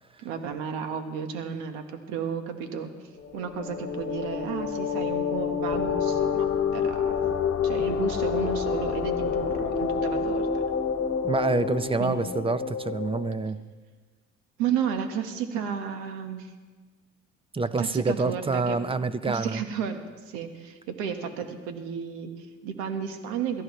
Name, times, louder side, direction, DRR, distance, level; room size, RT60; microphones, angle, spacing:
voice 1, 0.2-2.9 3.3-6.5 6.7-7.2 7.6-10.6 12.0-12.2 14.6-16.5 17.8-18.8 19.3-23.6, right 7 dB, 85° right, 6 dB, 1.5 m, -32 dB
sound 1, 3.2-13.5, left 6 dB, 45° left, 1.4 m, -28 dB
voice 2, 11.2-13.6 17.5-19.6, right 3 dB, 20° right, 14 dB, 0.7 m, -27 dB
22.0 x 14.0 x 3.2 m, 1.3 s
supercardioid pair, 85°, 30 cm